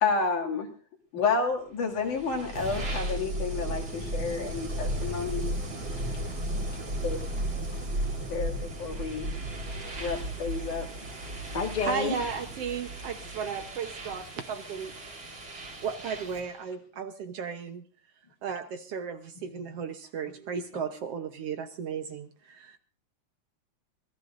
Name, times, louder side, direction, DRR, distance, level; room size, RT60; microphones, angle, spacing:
voice 1, 0.0-0.7 1.1-5.4 7.0-7.2 8.3-9.3 10.0-10.9, left 4 dB, 75° left, 2 dB, 3.9 m, -30 dB
sound 1, 1.9-16.6, right 1 dB, 40° right, 4.0 m, -35 dB
voice 2, 6.0-7.1 7.7-8.3 11.5-12.2, left 5 dB, 50° left, 5 dB, 0.5 m, -34 dB
voice 3, 11.8-14.9 15.8-17.8 18.4-22.8, right 6 dB, 65° right, 7 dB, 1.7 m, -35 dB
25.5 x 18.5 x 2.6 m, 0.36 s
omnidirectional pair, 3.5 m